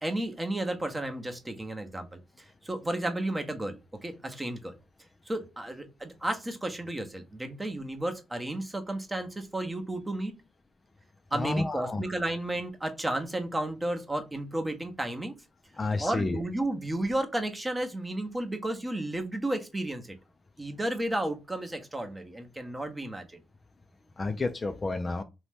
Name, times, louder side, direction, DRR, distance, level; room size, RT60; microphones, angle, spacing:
voice 1, 0.0-2.1 2.4-4.8 5.3-10.3 11.3-15.3 16.0-20.2 20.6-23.4, right 1 dB, 15° right, 0.7 m, -33 dB
voice 2, 11.3-12.0 15.8-16.4 24.2-25.2, left 3 dB, 25° left, 0.3 m, -30 dB
2.8 x 2.1 x 3.2 m
cardioid pair, 90°, 0 cm